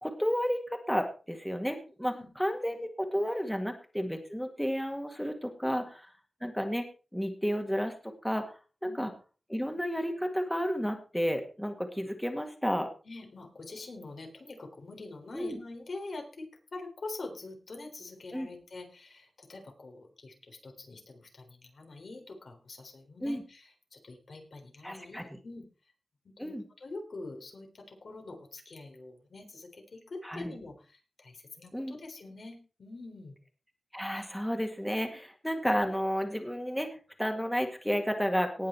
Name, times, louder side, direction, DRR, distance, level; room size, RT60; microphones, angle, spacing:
voice 1, 0.0-5.8 6.4-6.9 7.1-7.9 8.2-8.5 8.8-9.1 9.5-12.9 15.3-15.6 18.3-18.5 23.2-23.4 24.8-25.2 26.4-26.6 30.2-30.5 31.7-31.9 33.9-36.9 37.2-38.7, equal, 5° left, 5 dB, 2.0 m, -31 dB
voice 2, 8.8-9.1 13.1-25.6 26.2-33.3 35.0-35.2, left 2 dB, 70° left, 3 dB, 3.7 m, -45 dB
18.5 x 6.6 x 4.5 m, 0.35 s
wide cardioid pair, 70°, 0 cm